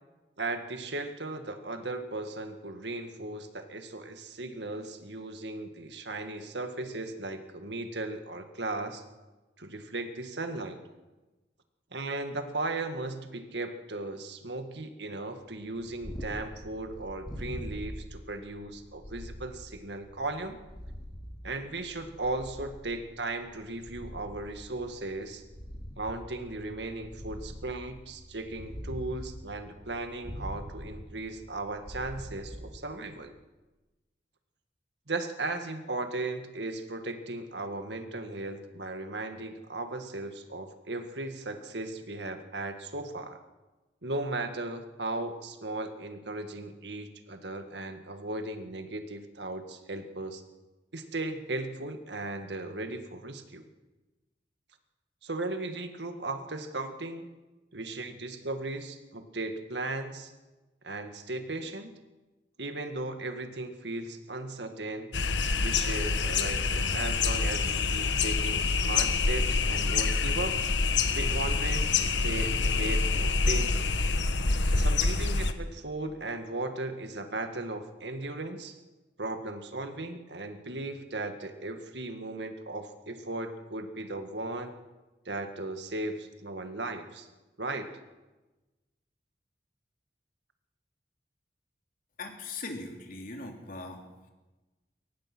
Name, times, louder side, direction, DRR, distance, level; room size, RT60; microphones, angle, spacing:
voice 1, 0.4-9.0 9.6-10.8 11.9-20.6 21.4-25.4 26.0-33.3 35.1-43.4 44.0-50.4 50.9-53.6 55.2-57.3 57.7-60.3 60.8-61.9 62.6-65.1 65.6-70.5 71.2-73.9 74.6-78.8 79.2-84.7 85.3-87.3 87.6-87.9, right 2 dB, 70° right, 7 dB, 1.9 m, -36 dB
Purr, 15.7-33.2, equal, 25° left, 4.8 m, -44 dB
sound 1, 65.1-75.5, left 4 dB, 85° left, 1.3 m, -26 dB
voice 2, 92.2-94.0, left 3 dB, 50° left, 3 dB, 3.2 m, -40 dB
23.0 x 18.5 x 6.2 m, 1.1 s
head